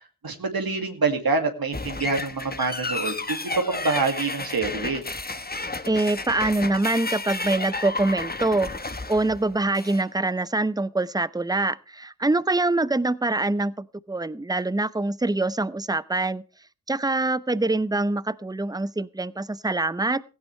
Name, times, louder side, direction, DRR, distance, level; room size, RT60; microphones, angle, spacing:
voice 1, 0.2-5.0, right 4 dB, 75° right, 2.3 m, -26 dB
sound 1, 1.7-10.1, left 3 dB, 25° left, 1.2 m, -32 dB
voice 2, 5.9-16.4 16.9-20.2, right 2 dB, 10° right, 0.7 m, -25 dB
17.5 x 15.0 x 3.3 m
cardioid pair, 45°, 36 cm